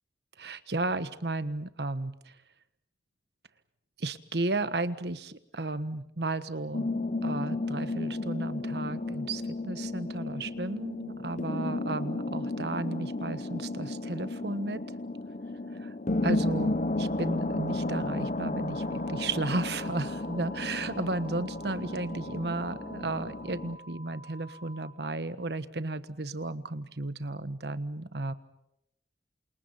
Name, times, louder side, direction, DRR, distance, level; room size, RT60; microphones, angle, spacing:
voice 1, 0.4-2.4 4.0-14.8 15.7-15.9 16.2-28.3, right 2 dB, 70° right, 13 dB, 1.4 m, -34 dB
sound 1, 6.7-23.8, left 2 dB, 45° left, 0.9 m, -33 dB
sound 2, 18.7-24.9, right 1 dB, 85° left, 4.8 m, -50 dB
28.0 x 28.0 x 5.7 m, 0.79 s
head